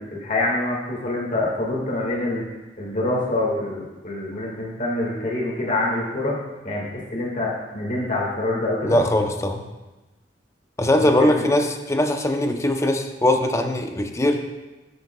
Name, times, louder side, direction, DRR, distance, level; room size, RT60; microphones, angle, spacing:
voice 1, 0.0-2.5 2.8-6.4 6.6-9.0 11.0-11.1, left 2 dB, 45° left, -3 dB, 1.8 m, -26 dB
voice 2, 8.8-9.6 10.8-14.4, left 1 dB, 15° left, 5 dB, 0.6 m, -20 dB
13.0 x 6.7 x 2.3 m, 1.1 s
head